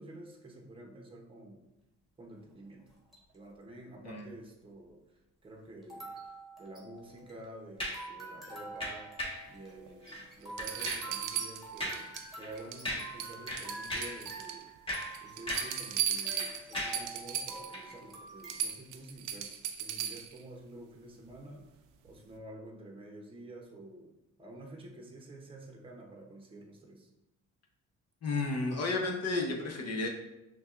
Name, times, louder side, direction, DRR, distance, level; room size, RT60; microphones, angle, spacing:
voice 1, 0.0-1.6 2.2-2.9 3.3-9.1 9.5-14.7 15.2-21.8 22.0-24.1 24.4-27.1, right 1 dB, 15° right, 0 dB, 0.7 m, -49 dB
sound 1, 2.9-3.4 4.2-4.3 5.8-18.6, right 3 dB, ahead, 1.2 m, -47 dB
sound 2, 7.8-8.1 8.8-9.5 10.0-10.3 10.6-11.1 11.8-12.1 12.4-12.5 12.9-13.2 13.5-14.2 14.7-15.8 16.1-17.1 17.7-17.9, left 1 dB, 15° left, 1.3 m, -38 dB
sound 3, 9.9-10.0 10.6-12.3 12.6-12.9 13.2-14.6 15.0-17.7 18.1-18.2 18.5-20.4 22.1-22.2, right 9 dB, 90° right, 0.5 m, -36 dB
voice 2, 28.2-30.1, left 3 dB, 55° left, 1 dB, 0.8 m, -32 dB
5.8 x 2.3 x 2.4 m, 0.95 s
cardioid pair, 90°, 30 cm